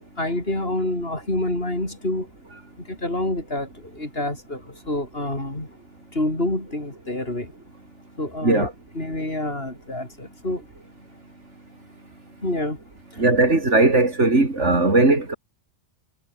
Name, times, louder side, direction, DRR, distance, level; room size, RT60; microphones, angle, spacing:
voice 1, 0.2-2.3 2.8-5.7 6.1-7.5 8.2-8.7 8.9-10.6 12.4-12.8 13.1-13.2, left 1 dB, 55° left, 6.6 m, -27 dB
voice 2, 13.2-15.3, right 2 dB, 85° right, 4.4 m, -18 dB
omnidirectional pair, 1.2 m